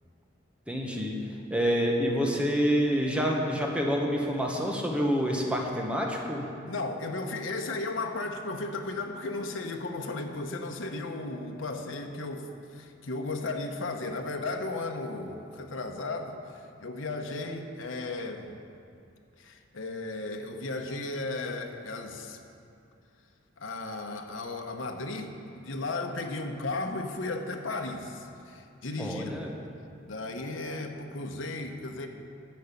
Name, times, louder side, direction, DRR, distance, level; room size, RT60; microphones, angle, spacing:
voice 1, 0.7-1.2 1.5-6.4 29.0-29.5, equal, 5° right, -1 dB, 1.2 m, -27 dB
voice 2, 6.6-18.5 19.4-22.4 23.6-29.4 30.0-32.1, left 2 dB, 85° left, 4 dB, 0.9 m, -35 dB
11.0 x 5.4 x 8.4 m, 2.4 s
head